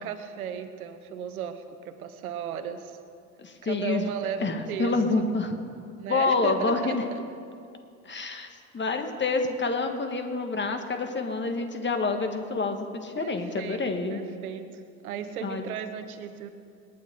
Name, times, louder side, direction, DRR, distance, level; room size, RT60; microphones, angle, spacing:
voice 1, 0.0-3.0 3.6-4.9 6.0-7.2 13.2-16.5, right 8 dB, 80° right, 10 dB, 1.1 m, -36 dB
voice 2, 3.4-4.1 4.4-5.6 6.1-7.0 8.1-14.2 15.4-15.6, left 3 dB, 25° left, 6 dB, 1.9 m, -28 dB
27.5 x 9.4 x 3.9 m, 2.4 s
hypercardioid pair, 65°, 42 cm